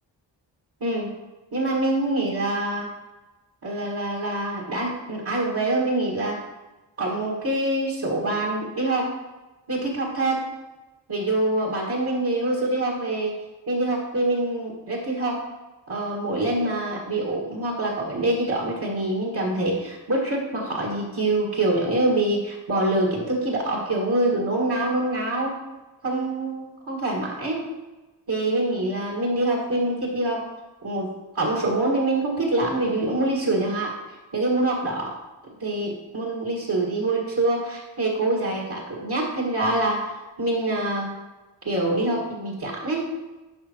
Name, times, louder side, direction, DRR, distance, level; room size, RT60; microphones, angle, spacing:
voice 1, 1.5-2.9 3.6-6.4 7.0-9.1 9.7-10.4 11.1-13.3 13.7-15.4 15.9-25.6 26.0-27.6 28.3-30.4 30.8-33.9 34.3-35.1 35.6-40.1 40.4-41.1 41.6-43.1, right 2 dB, 55° right, -3 dB, 2.0 m, -25 dB
12.0 x 5.3 x 3.0 m, 1.1 s
cardioid pair, 50°, 44 cm